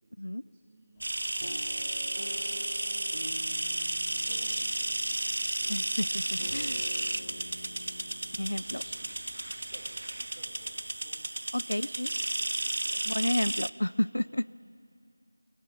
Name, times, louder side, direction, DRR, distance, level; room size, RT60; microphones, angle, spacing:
voice 1, 0.0-3.5 4.0-4.7 5.5-7.6 7.9-9.2 9.5-11.3 11.6-13.2, right 2 dB, 20° right, 0 dB, 2.3 m, -59 dB
sound 1, 0.9-10.9, left 1 dB, 15° left, 1.6 m, -60 dB
sound 2, 1.0-13.7, right 2 dB, 50° right, 0.4 m, -33 dB
sound 3, 1.4-9.5 10.1-10.2 10.5-10.7, left 2 dB, 50° left, 1.0 m, -47 dB
voice 2, 8.4-8.8 11.5-12.1 13.1-14.4, left 1 dB, 75° left, 19 dB, 0.4 m, -30 dB
20.0 x 17.0 x 9.1 m, 2.8 s
figure-of-eight pair, 170°, 0 cm